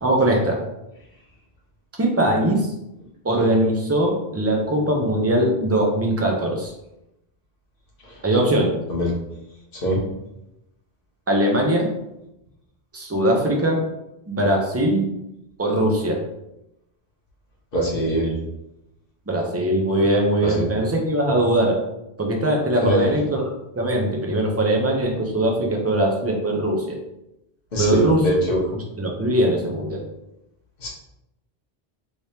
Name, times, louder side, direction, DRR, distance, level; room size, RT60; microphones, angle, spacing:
voice 1, 0.0-0.6 2.0-2.7 3.2-6.7 8.2-8.7 11.3-11.9 12.9-13.9 14.3-15.1 15.6-16.2 19.3-21.8 22.2-23.4 23.8-26.9 27.8-28.2 29.0-30.0, right 1 dB, 20° right, 0 dB, 0.4 m, -21 dB
voice 2, 17.7-18.3 20.4-20.6 22.8-23.1 27.7-28.7 30.8-30.9, equal, 60° left, -2 dB, 1.1 m, -22 dB
3.3 x 3.1 x 2.8 m, 0.87 s
omnidirectional pair, 1.0 m